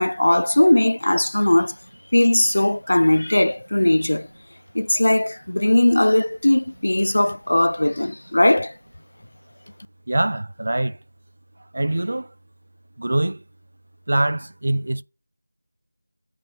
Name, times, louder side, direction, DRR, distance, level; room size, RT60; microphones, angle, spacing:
voice 1, 0.0-1.7 2.1-4.3 4.7-8.7, left 1 dB, 75° left, 0.3 m, -19 dB
voice 2, 10.1-11.0 11.7-12.3 13.0-13.4 14.1-15.0, right 1 dB, 50° right, 0.4 m, -23 dB
8.7 x 3.0 x 5.2 m
figure-of-eight pair, 180°, 0 cm